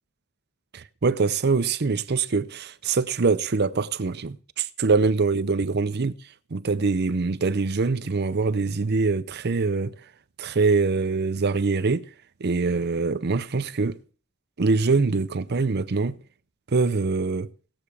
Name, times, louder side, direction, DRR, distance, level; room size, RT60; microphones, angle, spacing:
voice 1, 0.7-6.1 6.5-9.9 10.4-12.1 12.4-14.0 14.6-16.2 16.7-17.5, right 4 dB, 50° right, 0.6 m, -24 dB
17.5 x 7.0 x 4.8 m
head